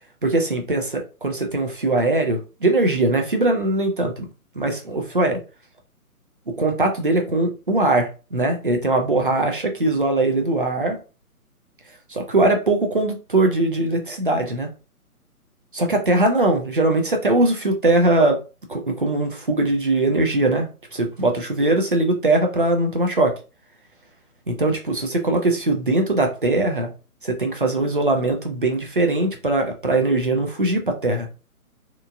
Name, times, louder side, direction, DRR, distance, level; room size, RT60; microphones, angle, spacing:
voice 1, 0.2-4.3 4.5-5.4 6.5-11.0 12.1-14.7 15.7-18.4 18.7-23.3 24.5-26.9 27.2-31.3, right 2 dB, 40° right, 0.4 m, -21 dB
2.9 x 2.4 x 2.3 m
figure-of-eight pair, 140°, 45 cm